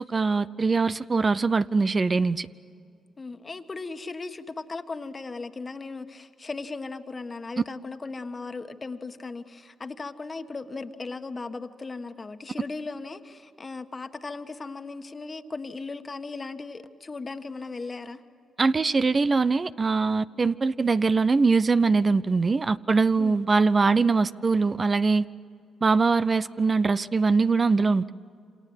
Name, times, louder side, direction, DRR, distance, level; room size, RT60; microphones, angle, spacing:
voice 1, 0.0-2.5 18.6-25.3 25.8-28.1, right 4 dB, 40° right, 14 dB, 0.6 m, -22 dB
voice 2, 3.2-18.2 23.2-23.4, left 3 dB, 35° left, 8 dB, 1.5 m, -37 dB
28.0 x 26.0 x 8.0 m, 2.3 s
supercardioid pair, 55°, 0 cm